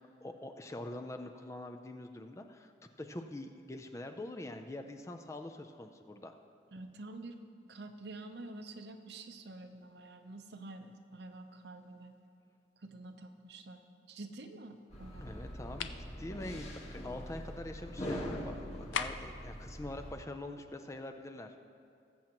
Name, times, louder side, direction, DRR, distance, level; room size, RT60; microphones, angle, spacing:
voice 1, 0.0-2.7 3.0-6.3 15.1-21.5, left 1 dB, 15° left, 6 dB, 0.4 m, -44 dB
voice 2, 6.7-7.4 7.7-12.1 12.8-13.8 14.1-15.4, right 2 dB, 60° right, 6 dB, 0.7 m, -48 dB
sound 1, 14.9-20.1, equal, 35° left, 1.5 m, -43 dB
sound 2, 15.8-16.1 18.9-19.4, left 7 dB, 85° left, 0.4 m, -36 dB
19.5 x 7.5 x 3.0 m, 2.5 s
head